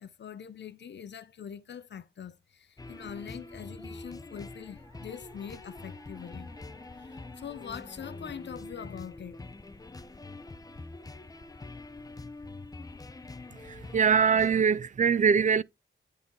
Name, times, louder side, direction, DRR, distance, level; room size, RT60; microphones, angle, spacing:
voice 1, 0.0-6.5 7.0-9.4, left 8 dB, 60° left, 0.6 m, -43 dB
sound 1, 2.8-14.6, left 2 dB, 20° left, 0.6 m, -45 dB
Musical instrument, 2.9-8.2, right 1 dB, 20° right, 1.6 m, -58 dB
voice 2, 13.6-15.6, right 6 dB, 40° right, 0.4 m, -23 dB
9.6 x 3.8 x 3.7 m
wide cardioid pair, 135°, 21 cm